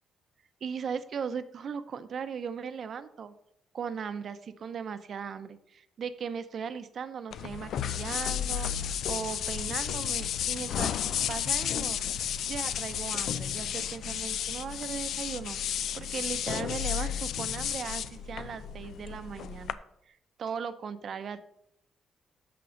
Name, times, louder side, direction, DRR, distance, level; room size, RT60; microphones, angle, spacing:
voice 1, 0.6-3.3 3.7-12.0 12.5-19.8 20.1-21.4, right 6 dB, 55° right, 12 dB, 0.7 m, -38 dB
sound 1, 7.3-19.7, left 9 dB, 70° left, 0.4 m, -32 dB
6.1 x 6.0 x 6.4 m, 0.76 s
cardioid pair, 90°, 0 cm